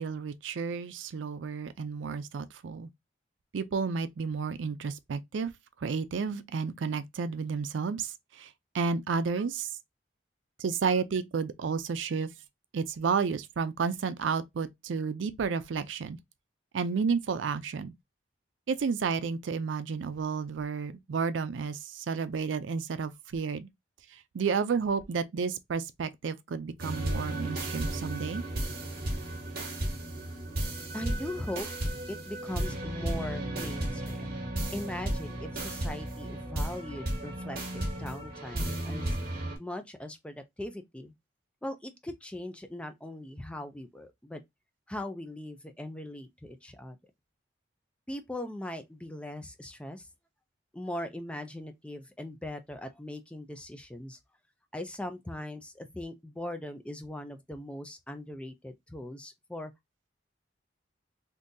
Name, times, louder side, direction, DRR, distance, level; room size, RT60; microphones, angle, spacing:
voice 1, 0.0-2.9 3.5-5.5 5.8-9.8 10.6-12.3 12.7-16.2 16.7-17.9 18.7-23.7 24.1-28.4, right 5 dB, 85° right, 0.4 m, -31 dB
sound 1, 26.8-39.6, right 1 dB, 55° right, 1.3 m, -34 dB
voice 2, 30.9-31.7 32.1-34.3 34.7-39.2 39.6-41.1 41.6-44.4 44.9-47.0 48.1-50.1 50.7-54.2 54.7-59.7, left 1 dB, 5° left, 0.4 m, -40 dB
3.7 x 2.6 x 2.6 m
head